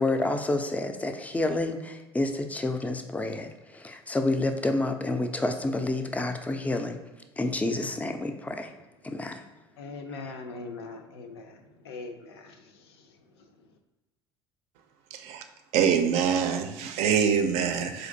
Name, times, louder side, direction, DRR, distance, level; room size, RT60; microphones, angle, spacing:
voice 1, 0.0-7.0 7.4-8.7 9.0-9.4 10.1-10.3, left 2 dB, 10° left, 6 dB, 0.4 m, -29 dB
voice 2, 9.8-11.5 11.9-12.5, left 3 dB, 70° left, 5 dB, 0.4 m, -40 dB
voice 3, 15.1-15.4 15.7-18.1, right 7 dB, 55° right, 6 dB, 0.4 m, -25 dB
4.2 x 2.5 x 2.6 m, 1.1 s
figure-of-eight pair, 65°, 14 cm